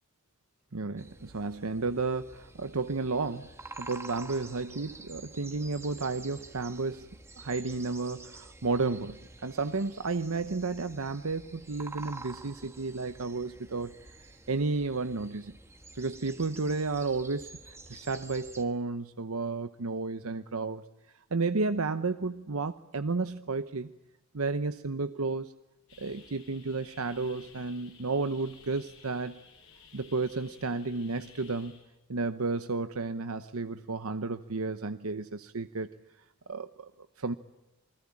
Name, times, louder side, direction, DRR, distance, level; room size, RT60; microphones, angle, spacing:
voice 1, 0.7-3.5 3.8-13.9 14.2-15.5 16.0-20.8 21.3-23.9 24.3-25.5 26.0-29.4 29.9-31.8 32.1-35.9 36.5-36.9 37.2-37.3, right 3 dB, 85° right, 0.9 m, -32 dB
sound 1, 1.0-18.6, right 3 dB, 10° right, 1.5 m, -49 dB
sound 2, 25.9-31.8, left 5 dB, 75° left, 7.8 m, -56 dB
28.5 x 21.0 x 8.5 m
head